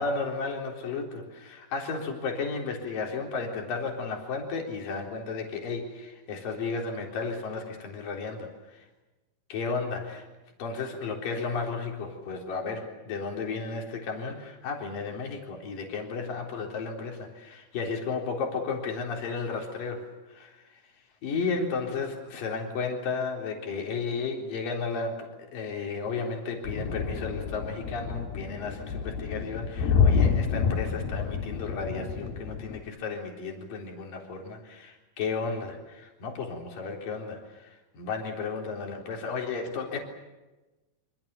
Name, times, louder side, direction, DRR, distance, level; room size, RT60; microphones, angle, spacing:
voice 1, 0.0-8.5 9.5-10.2 10.6-20.6 21.2-40.0, left 4 dB, 65° left, 1 dB, 5.5 m, -33 dB
sound 1, 26.6-32.8, left 6 dB, 90° left, 3.9 m, -28 dB
27.5 x 26.0 x 7.0 m, 1.1 s
omnidirectional pair, 4.3 m